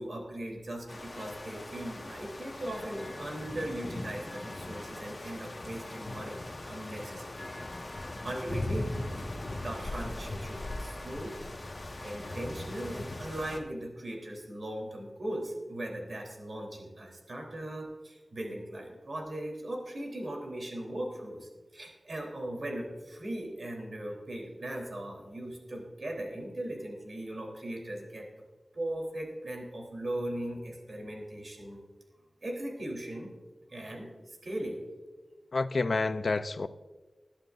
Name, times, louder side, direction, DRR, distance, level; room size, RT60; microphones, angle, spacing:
voice 1, 0.0-6.4 6.7-7.5 8.2-8.9 9.6-11.3 12.0-28.2 28.7-31.8 32.4-33.3 33.7-34.8, right 1 dB, 65° right, 0 dB, 3.4 m, -38 dB
sound 1, 0.9-13.6, left 1 dB, 40° left, 1.5 m, -39 dB
voice 2, 35.5-36.7, left 3 dB, 70° left, 12 dB, 0.6 m, -29 dB
21.0 x 11.5 x 2.6 m, 1.3 s
wide cardioid pair, 85°, 0 cm